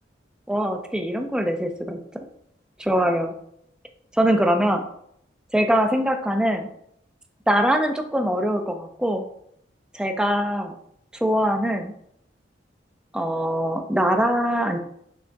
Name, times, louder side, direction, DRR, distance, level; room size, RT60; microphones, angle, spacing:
voice 1, 0.5-2.0 2.8-3.3 4.2-4.9 5.5-6.7 7.5-9.2 9.9-10.8 11.2-11.9 13.1-14.8, equal, 5° right, 5 dB, 0.4 m, -22 dB
6.1 x 3.7 x 2.2 m, 0.71 s
head